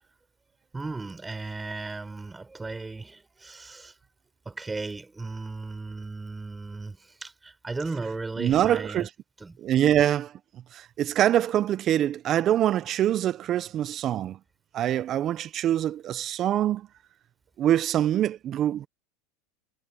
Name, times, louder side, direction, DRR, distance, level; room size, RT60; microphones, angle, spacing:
voice 1, 0.7-3.9 4.4-9.1 9.4-9.6, right 3 dB, 15° right, 4.8 m, -36 dB
voice 2, 8.4-9.1 9.6-10.3 11.0-14.4 14.7-16.8 17.6-18.9, right 11 dB, 40° right, 0.9 m, -24 dB
hypercardioid pair, 105°, 0 cm